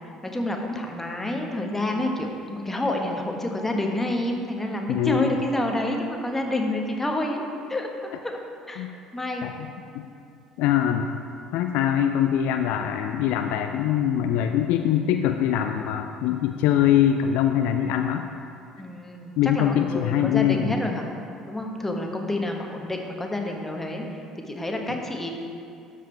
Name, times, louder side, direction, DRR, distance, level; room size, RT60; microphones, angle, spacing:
voice 1, 0.2-7.9 8.2-8.4 8.7-9.5 18.8-21.0 21.5-24.0 24.5-25.3, left 1 dB, 10° left, 2 dB, 1.1 m, -28 dB
voice 2, 4.9-5.4 8.8-8.9 9.4-10.1 10.6-11.1 11.5-18.3 19.4-20.7, left 10 dB, 60° left, 6 dB, 0.3 m, -23 dB
12.5 x 5.2 x 3.3 m, 2.5 s
figure-of-eight pair, 60°, 2 cm